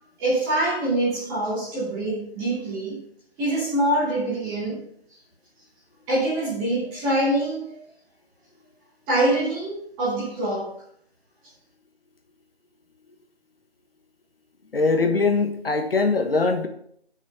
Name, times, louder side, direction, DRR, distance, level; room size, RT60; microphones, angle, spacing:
voice 1, 0.2-3.0 3.4-4.8 6.1-7.8 9.1-10.7, right 1 dB, 10° right, -9 dB, 3.1 m, -24 dB
voice 2, 14.7-16.7, left 3 dB, 65° left, 5 dB, 1.5 m, -21 dB
8.6 x 6.4 x 5.9 m, 0.67 s
figure-of-eight pair, 160°, 31 cm